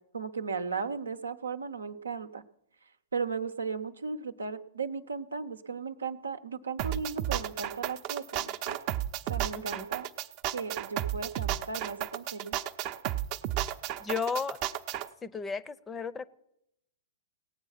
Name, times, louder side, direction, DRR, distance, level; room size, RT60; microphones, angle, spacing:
voice 1, 0.1-2.4 3.1-8.8 9.3-10.1 10.5-12.6, right 5 dB, 90° right, 9 dB, 0.8 m, -36 dB
sound 1, 6.8-15.1, right 12 dB, 45° right, 0.6 m, -33 dB
voice 2, 9.5-9.9 14.0-14.6 15.2-16.3, left 5 dB, 15° left, 19 dB, 0.6 m, -34 dB
18.0 x 8.0 x 5.7 m, 0.79 s
hypercardioid pair, 115°, 0 cm